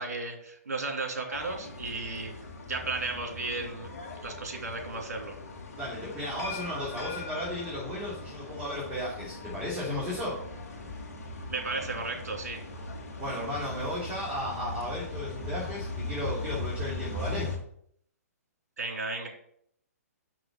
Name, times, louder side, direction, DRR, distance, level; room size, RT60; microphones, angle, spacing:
voice 1, 0.0-2.3 2.6-3.9 4.2-5.4 11.5-12.6 18.8-19.3, right 3 dB, 75° right, 2 dB, 2.7 m, -34 dB
sound 1, 1.3-17.6, left 3 dB, 60° left, 2.1 m, -39 dB
voice 2, 5.8-10.4 13.2-17.5, left 1 dB, 15° right, -8 dB, 3.2 m, -34 dB
6.3 x 6.1 x 6.0 m, 0.67 s
hypercardioid pair, 135°, 9 cm